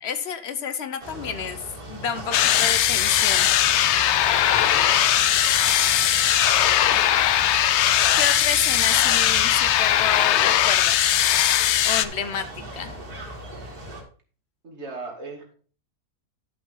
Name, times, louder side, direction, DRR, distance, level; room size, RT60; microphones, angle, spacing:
voice 1, 0.0-1.6 1.9-3.5 8.1-11.1 11.8-12.9, left 7 dB, 50° left, 11 dB, 1.0 m, -30 dB
sound 1, 1.0-14.0, right 1 dB, 80° right, 2.6 m, -37 dB
sound 2, 2.3-12.0, left 11 dB, 70° left, 0.7 m, -19 dB
sound 3, 3.8-9.9, right 6 dB, 65° right, 1.3 m, -38 dB
voice 2, 8.6-9.1 14.6-15.5, right 3 dB, 45° right, 1 dB, 2.3 m, -38 dB
11.5 x 5.4 x 4.0 m, 0.40 s
omnidirectional pair, 1.6 m